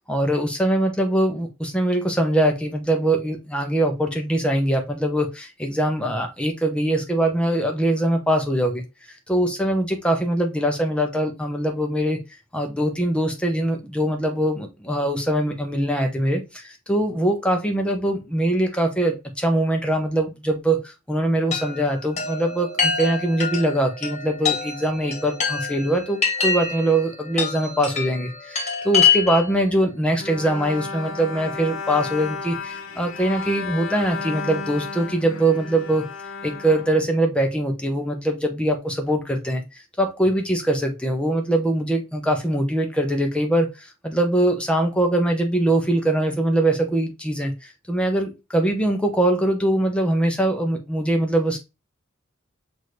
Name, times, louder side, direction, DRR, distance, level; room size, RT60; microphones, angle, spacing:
voice 1, 0.1-8.8 9.3-12.2 12.5-36.1 36.4-51.6, right 1 dB, 5° left, 3 dB, 0.7 m, -22 dB
Chime, 21.5-29.6, left 6 dB, 35° left, 1.3 m, -25 dB
Bowed string instrument, 30.2-37.6, left 4 dB, 65° left, 0.9 m, -33 dB
6.1 x 2.6 x 3.1 m, 0.26 s
head